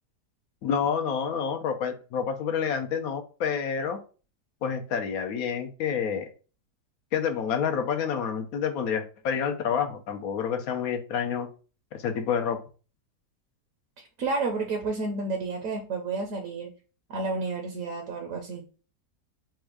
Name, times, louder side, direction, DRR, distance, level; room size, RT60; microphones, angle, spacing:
voice 1, 0.6-4.0 4.6-6.3 7.1-11.5 11.9-12.6, left 7 dB, 65° left, 7 dB, 1.0 m, -28 dB
voice 2, 14.0-16.7 17.1-18.6, right 3 dB, 60° right, 3 dB, 1.0 m, -31 dB
4.3 x 2.3 x 4.6 m, 0.36 s
omnidirectional pair, 1.8 m